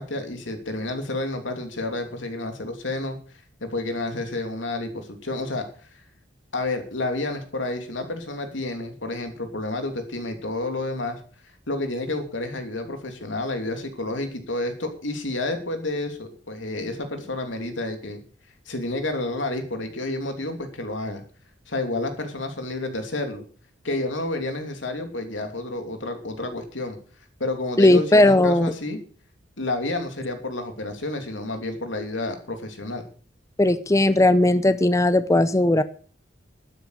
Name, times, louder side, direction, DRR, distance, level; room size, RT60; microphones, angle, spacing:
voice 1, 0.0-3.2 3.6-5.9 6.5-11.2 11.7-18.2 18.7-21.2 21.7-23.4 23.8-27.0 27.4-29.0 29.6-33.0, left 2 dB, 85° left, 6 dB, 3.0 m, -30 dB
voice 2, 27.8-28.7 33.6-35.8, left 1 dB, 15° left, 13 dB, 0.6 m, -17 dB
12.5 x 9.5 x 6.5 m, 0.41 s
head